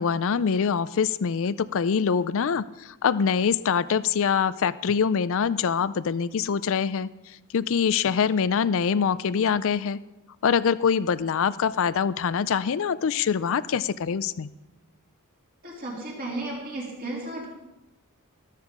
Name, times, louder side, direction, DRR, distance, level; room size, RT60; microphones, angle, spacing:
voice 1, 0.0-7.1 7.5-10.0 10.4-14.5, left 6 dB, 65° left, 17 dB, 0.4 m, -24 dB
voice 2, 15.6-17.5, right 2 dB, 40° right, -2 dB, 3.1 m, -34 dB
13.0 x 13.0 x 3.8 m, 0.95 s
head